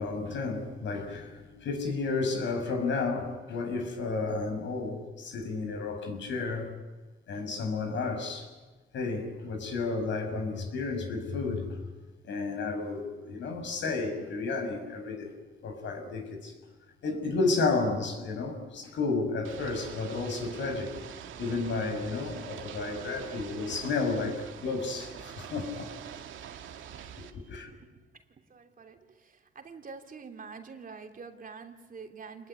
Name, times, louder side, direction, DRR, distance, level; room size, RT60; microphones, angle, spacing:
voice 1, 0.0-6.7 7.3-8.5 8.9-11.8 12.2-15.3 15.6-16.5 17.0-21.1 21.4-25.9 27.2-27.7, left 3 dB, 70° left, 6.0 m, -32 dB
Ocean / Boat Water vehicle, 19.4-27.3, right 9 dB, 75° right, 2.1 m, -44 dB
voice 2, 27.4-28.2 28.5-32.5, right 5 dB, 45° right, 3.1 m, -46 dB
27.5 x 20.5 x 9.9 m
cardioid pair, 90°, 20 cm